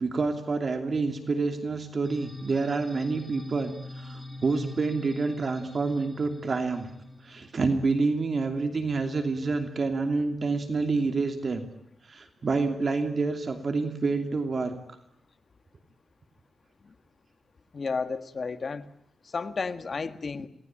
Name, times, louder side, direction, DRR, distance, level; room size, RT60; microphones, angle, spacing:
voice 1, 0.0-6.9 7.2-11.6 12.0-14.7, right 3 dB, 45° right, 6 dB, 2.8 m, -28 dB
sound 1, 2.0-8.6, left 1 dB, ahead, 6.6 m, -44 dB
voice 2, 17.7-18.9 19.3-20.5, left 4 dB, 45° left, 10 dB, 1.8 m, -32 dB
27.5 x 19.5 x 8.8 m, 0.71 s
wide cardioid pair, 110°, 0 cm